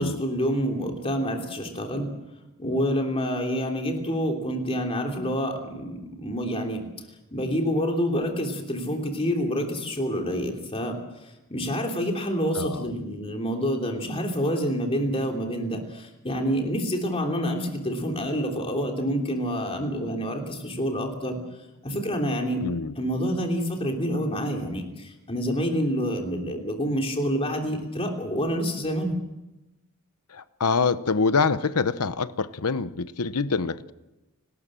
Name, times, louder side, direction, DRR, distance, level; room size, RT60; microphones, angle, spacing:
voice 1, 0.0-2.1 2.6-6.9 7.3-21.4 21.8-22.6 23.0-29.1, equal, 25° left, 2 dB, 3.2 m, -27 dB
voice 2, 12.5-12.9 22.6-22.9 30.3-33.9, left 4 dB, 90° left, 14 dB, 0.9 m, -25 dB
30.0 x 13.0 x 7.6 m, 0.99 s
head